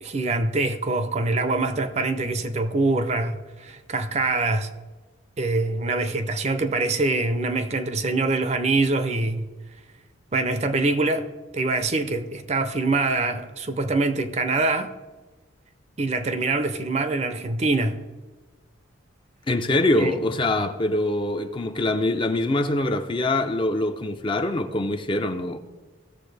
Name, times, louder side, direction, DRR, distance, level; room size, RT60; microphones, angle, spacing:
voice 1, 0.0-4.7 5.4-9.5 10.3-14.9 16.0-18.0 19.9-20.2, right 3 dB, 30° right, 0.5 m, -24 dB
voice 2, 19.5-25.6, left 2 dB, 25° left, 0.4 m, -24 dB
17.0 x 7.0 x 3.3 m
head